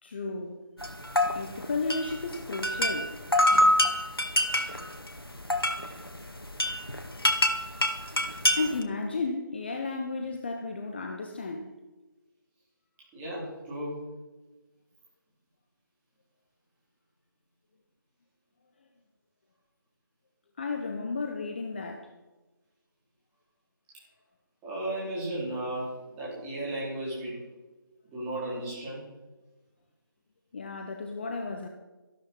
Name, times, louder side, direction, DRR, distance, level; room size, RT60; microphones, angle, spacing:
voice 1, 0.0-0.6 1.3-3.2 3.5-3.8 8.5-11.7 20.6-22.1 30.5-31.7, left 3 dB, 30° left, 0.9 m, -33 dB
sound 1, 0.8-8.8, left 1 dB, 85° left, 2.0 m, -27 dB
voice 2, 13.1-14.0 24.6-25.9 26.2-27.4 28.1-29.0, right 1 dB, 10° right, 4.3 m, -34 dB
13.5 x 12.5 x 4.7 m
figure-of-eight pair, 155°, 12 cm